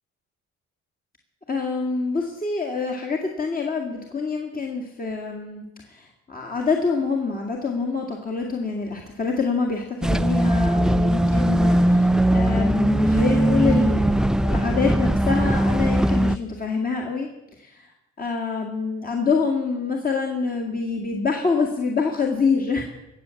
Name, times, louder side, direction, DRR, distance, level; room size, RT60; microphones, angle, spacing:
voice 1, 1.5-17.3 17.6-17.9 18.2-22.8, left 4 dB, 30° left, 0 dB, 1.9 m, -26 dB
sound 1, 10.0-16.4, right 1 dB, ahead, 0.4 m, -20 dB
19.5 x 7.4 x 7.1 m, 0.95 s
cardioid pair, 90°, 30 cm